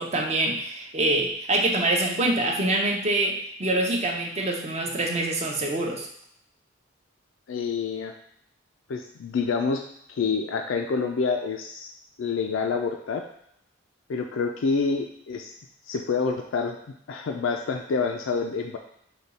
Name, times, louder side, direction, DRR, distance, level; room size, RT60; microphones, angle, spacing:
voice 1, 0.0-6.1, right 2 dB, 35° right, 0 dB, 0.6 m, -25 dB
voice 2, 7.5-8.1 8.9-9.8 10.1-11.9 12.2-13.3 14.1-15.5 15.9-16.8 17.1-18.8, left 5 dB, 70° left, 4 dB, 0.4 m, -27 dB
5.1 x 2.3 x 4.1 m, 0.71 s
head